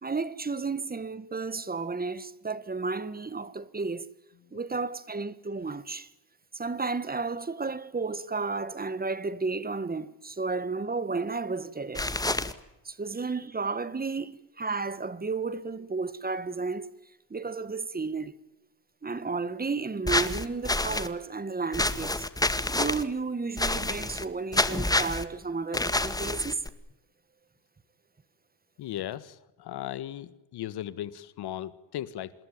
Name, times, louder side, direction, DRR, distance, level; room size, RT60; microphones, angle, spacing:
voice 1, 0.0-4.1 4.5-6.1 6.5-12.1 12.8-16.9 17.3-18.3 19.0-22.3 22.7-26.6, right 4 dB, 20° right, 1.7 m, -32 dB
sound 1, 11.9-12.5 20.1-21.1 21.7-23.0 23.6-24.3 24.5-25.2 25.7-26.7, left 2 dB, 10° left, 2.0 m, -28 dB
voice 2, 28.8-32.3, left 12 dB, 75° left, 1.8 m, -37 dB
27.5 x 20.5 x 9.3 m
cardioid pair, 85°, 40 cm